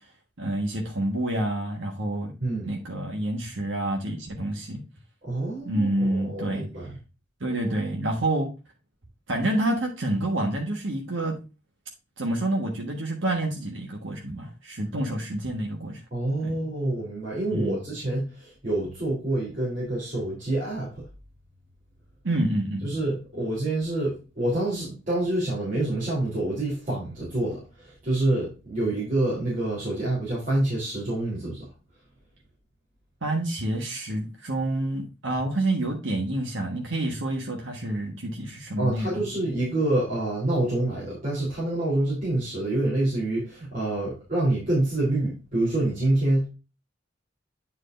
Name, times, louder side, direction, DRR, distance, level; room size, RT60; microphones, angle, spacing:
voice 1, 0.4-2.3 2.6-4.8 5.6-6.7 7.4-8.5 9.3-11.4 12.2-16.0 16.4-16.6 17.5-17.8 22.2-22.9 33.2-39.3, right 1 dB, 90° right, 0 dB, 1.4 m, -28 dB
voice 2, 2.4-2.7 5.2-6.9 16.1-21.0 22.8-31.6 38.8-46.5, right 1 dB, 45° right, -7 dB, 3.2 m, -27 dB
9.6 x 4.7 x 2.5 m, 0.30 s
head